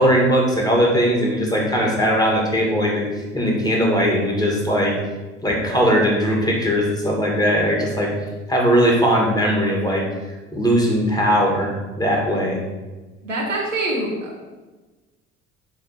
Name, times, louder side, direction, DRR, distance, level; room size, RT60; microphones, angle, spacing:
voice 1, 0.0-3.1 3.3-4.9 5.4-8.1 8.5-10.1 10.5-11.7 12.0-12.6, equal, 10° left, -1 dB, 2.6 m, -19 dB
voice 2, 13.2-14.5, right 2 dB, 90° right, -3 dB, 1.4 m, -25 dB
9.9 x 3.6 x 5.9 m, 1.2 s
figure-of-eight pair, 60°, 37 cm